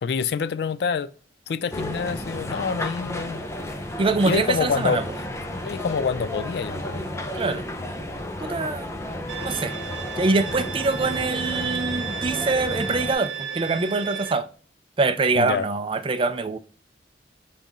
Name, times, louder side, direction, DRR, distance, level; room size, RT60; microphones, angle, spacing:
voice 1, 0.0-1.1 1.5-3.4 4.2-5.0 5.6-7.1 15.4-15.7, left 5 dB, 65° left, 0.3 m, -26 dB
sound 1, 1.7-13.1, left 1 dB, 15° left, 0.6 m, -32 dB
voice 2, 4.0-5.0 7.3-7.6 8.4-8.9 9.4-9.7 10.2-14.5 15.0-16.6, right 3 dB, 30° right, 0.4 m, -24 dB
Bowed string instrument, 9.3-14.3, right 7 dB, 85° right, 0.9 m, -33 dB
5.3 x 3.6 x 2.7 m
head